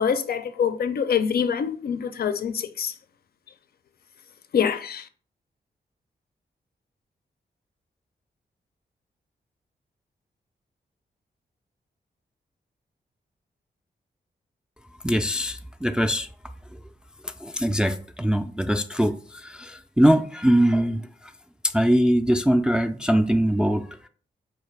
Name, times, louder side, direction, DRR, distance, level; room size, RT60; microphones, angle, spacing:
voice 1, 0.0-2.9 4.5-5.0, left 7 dB, 60° left, 0.4 m, -25 dB
voice 2, 15.0-16.3 17.4-19.1 19.4-21.0 21.7-23.8, equal, 5° right, 0.3 m, -22 dB
4.1 x 2.4 x 3.3 m
cardioid pair, 60°, 18 cm